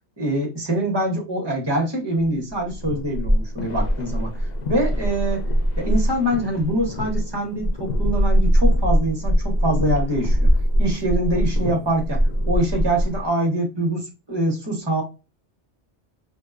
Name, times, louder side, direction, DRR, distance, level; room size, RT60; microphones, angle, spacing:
voice 1, 0.2-4.3 4.7-5.5 5.8-10.5 10.8-15.0, right 1 dB, 25° right, 0 dB, 0.7 m, -24 dB
sound 1, 2.5-13.3, equal, 65° left, 0.4 m, -22 dB
2.6 x 2.2 x 2.2 m, 0.29 s
omnidirectional pair, 1.2 m